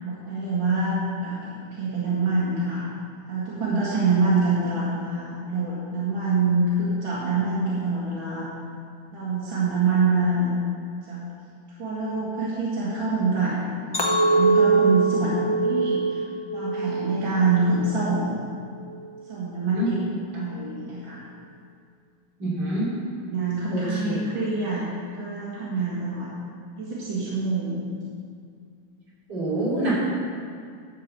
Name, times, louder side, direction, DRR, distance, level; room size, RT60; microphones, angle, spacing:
voice 1, 0.0-2.8 3.3-8.5 9.1-10.5 11.1-11.2 11.8-16.2 16.5-18.3 19.3-20.0 20.3-21.2 23.2-24.8 25.1-26.3 26.8-27.8, right 3 dB, 85° right, -8 dB, 2.6 m, -25 dB
Chink clink, 13.9-18.3 18.7-19.2, right 3 dB, 40° left, 0.3 m, -23 dB
voice 2, 22.4-22.9 23.7-24.2 29.3-29.9, right 1 dB, 60° right, -8 dB, 3.6 m, -26 dB
11.5 x 4.8 x 7.4 m, 2.2 s
omnidirectional pair, 2.1 m